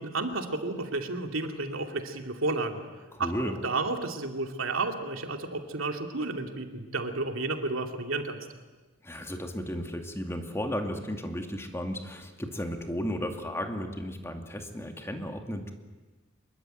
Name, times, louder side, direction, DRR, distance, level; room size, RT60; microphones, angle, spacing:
voice 1, 0.0-2.8 3.2-8.5, right 3 dB, 85° right, 4 dB, 2.7 m, -32 dB
voice 2, 3.1-3.6 9.0-15.7, equal, 15° left, 4 dB, 2.4 m, -34 dB
25.0 x 22.5 x 9.3 m, 1.2 s
head